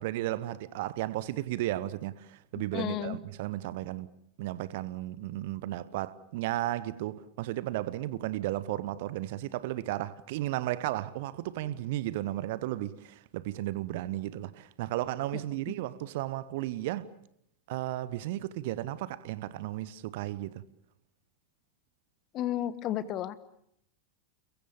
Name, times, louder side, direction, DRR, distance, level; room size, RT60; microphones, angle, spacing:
voice 1, 0.0-4.1 4.4-17.1 17.7-20.6, right 15 dB, 50° right, 1.1 m, -34 dB
voice 2, 2.7-3.2 15.3-15.4 22.3-23.4, left 12 dB, 35° left, 1.4 m, -32 dB
29.0 x 22.0 x 7.0 m
figure-of-eight pair, 90°, 0 cm